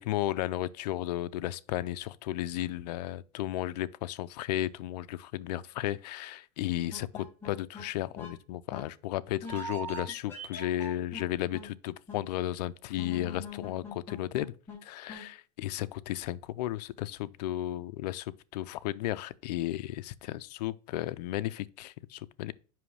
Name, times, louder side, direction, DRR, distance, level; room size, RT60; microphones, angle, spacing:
voice 1, 0.0-7.1 7.5-14.5 14.9-22.5, left 14 dB, 80° left, 0.5 m, -34 dB
sound 1, 6.9-7.8 8.2-8.3 8.7-8.8 9.4-11.2 11.5-11.7 12.1-12.2 13.0-14.8 15.1-15.3, left 1 dB, 10° left, 2.7 m, -41 dB
7.6 x 5.6 x 3.2 m
supercardioid pair, 145°, 20 cm